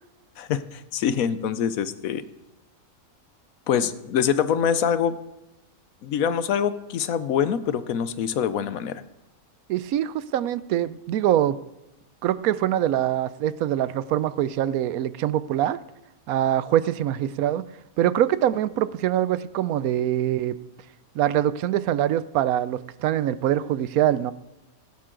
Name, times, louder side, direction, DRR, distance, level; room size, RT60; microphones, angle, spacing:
voice 1, 0.4-2.2 3.7-5.2 6.0-9.0, left 8 dB, 75° left, 13 dB, 1.1 m, -24 dB
voice 2, 9.7-11.6 12.2-15.8 16.3-17.6 18.0-20.6 21.1-24.3, right 11 dB, 80° right, 15 dB, 1.0 m, -24 dB
16.0 x 11.0 x 3.8 m, 0.97 s
omnidirectional pair, 1.5 m